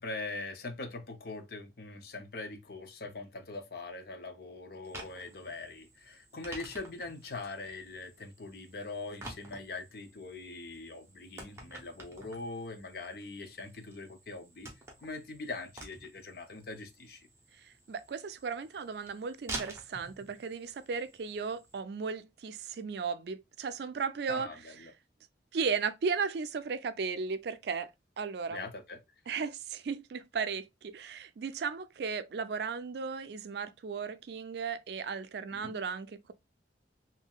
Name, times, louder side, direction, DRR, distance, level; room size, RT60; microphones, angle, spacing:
voice 1, 0.0-14.7 15.0-17.3 24.3-24.9 28.5-29.0 35.5-35.8, left 3 dB, 55° left, 0.6 m, -42 dB
sound 1, 4.8-21.8, right 2 dB, 15° right, 0.7 m, -49 dB
voice 2, 17.9-24.5 25.5-27.9 28.2-28.6 29.3-36.3, right 5 dB, 65° right, 0.4 m, -35 dB
3.6 x 2.7 x 2.2 m
head